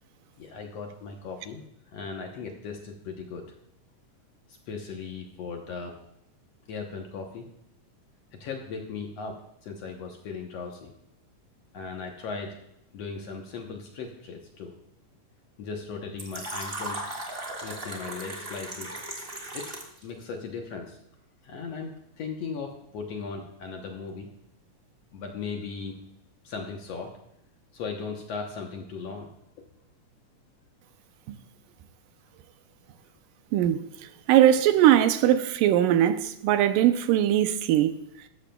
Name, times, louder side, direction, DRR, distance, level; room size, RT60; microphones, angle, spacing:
voice 1, 0.4-1.6 1.9-3.4 4.5-6.0 6.7-7.5 8.4-10.9 11.7-12.6 12.9-14.8 15.6-17.1 17.6-18.9 19.5-19.7 20.0-21.0 21.4-24.3 25.1-26.0 26.4-27.1 27.7-29.3, left 5 dB, 65° left, 1.8 m, -37 dB
Fill (with liquid), 16.2-20.0, right 1 dB, 35° right, 0.9 m, -36 dB
voice 2, 34.3-38.0, right 11 dB, 85° right, 2.3 m, -20 dB
14.0 x 13.0 x 2.3 m
omnidirectional pair, 3.8 m